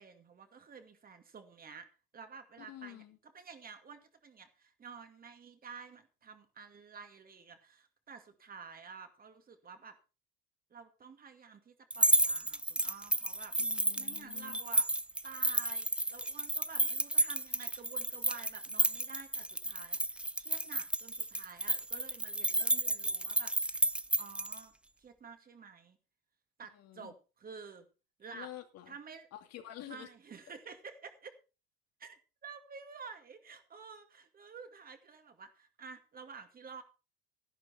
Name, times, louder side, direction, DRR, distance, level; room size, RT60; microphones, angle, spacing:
voice 1, 0.0-1.9 2.1-10.0 10.7-13.5 14.0-14.9 15.2-23.9 24.2-24.7 25.0-26.0 26.6-27.9 28.2-28.5 28.9-29.3 29.9-31.4 32.0-36.8, right 5 dB, 30° right, 7 dB, 2.4 m, -51 dB
voice 2, 2.6-3.2 13.6-14.6 26.7-27.1 28.3-29.0 29.3-30.1, left 13 dB, 55° left, 6 dB, 2.6 m, -48 dB
sound 1, 11.9-24.6, right 1 dB, 5° right, 0.5 m, -31 dB
12.5 x 11.5 x 4.4 m, 0.32 s
supercardioid pair, 105°, 30 cm